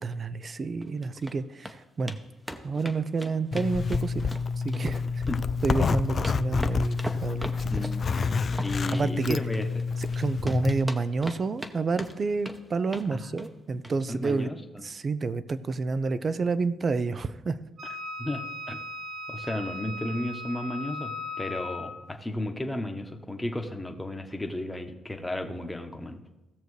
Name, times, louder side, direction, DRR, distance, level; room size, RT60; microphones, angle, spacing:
voice 1, 0.0-2.2 2.6-4.4 4.6-5.0 5.6-7.5 8.9-9.4 10.0-14.5 14.8-17.6, right 4 dB, 40° right, 15 dB, 0.5 m, -29 dB
sound 1, 0.8-1.3 1.6-1.8 2.1-2.2 2.5-4.4 4.7-5.4 5.7-10.2 10.5-11.7 12.0-12.6 12.9-13.1 13.4-13.6 13.8-14.0 14.3-14.4, right 1 dB, 10° right, 0.8 m, -38 dB
Zipper (clothing), 3.5-10.8, left 5 dB, 45° left, 0.3 m, -28 dB
voice 2, 7.7-8.0 8.6-9.7 13.1-13.7 14.1-14.8 18.2-18.4 18.7-18.8 19.3-26.2, left 1 dB, 10° left, 4 dB, 1.1 m, -33 dB
Wind instrument woodwind instrument, 17.8-22.0, left 2 dB, 60° right, 3.1 m, -37 dB
16.5 x 6.6 x 3.2 m, 1.0 s
cardioid pair, 90°, 0 cm